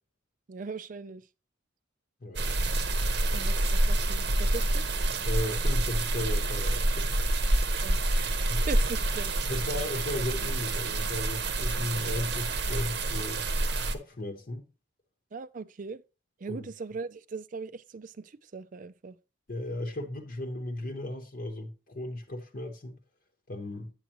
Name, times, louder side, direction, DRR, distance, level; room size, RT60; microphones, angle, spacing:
voice 1, 0.5-1.3 3.3-4.8 7.8-9.3 15.3-16.0 16.4-19.2, right 4 dB, 45° right, 0.4 m, -40 dB
voice 2, 2.2-2.6 5.2-7.1 8.5-8.7 9.5-13.4 13.9-14.7 16.5-16.7 19.5-23.0 23.5-23.9, left 1 dB, 50° left, 0.9 m, -35 dB
sound 1, 2.4-14.0, right 2 dB, 60° right, 0.9 m, -27 dB
8.8 x 8.1 x 2.9 m
head